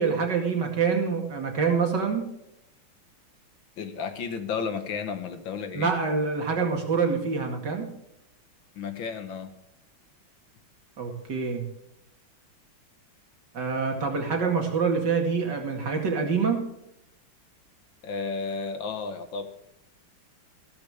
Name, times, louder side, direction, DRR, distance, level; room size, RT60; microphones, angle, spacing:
voice 1, 0.0-2.3 5.7-7.9 11.0-11.6 13.5-16.6, right 5 dB, 55° right, 2 dB, 2.9 m, -26 dB
voice 2, 3.8-5.9 8.8-9.5 18.0-19.5, left 5 dB, 70° left, 8 dB, 2.0 m, -33 dB
14.0 x 13.5 x 3.6 m, 0.81 s
omnidirectional pair, 2.2 m